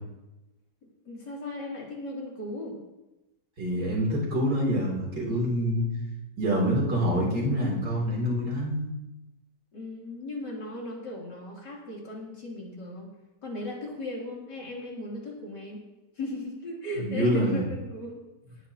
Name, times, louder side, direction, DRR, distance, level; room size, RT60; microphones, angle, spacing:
voice 1, 1.1-2.8 9.7-13.1 13.4-15.8 16.2-18.2, left 2 dB, 70° left, -3 dB, 3.7 m, -37 dB
voice 2, 3.6-5.9 6.4-8.9 17.0-17.6, equal, 70° right, -3 dB, 3.7 m, -26 dB
19.0 x 10.0 x 2.9 m, 0.99 s
omnidirectional pair, 1.9 m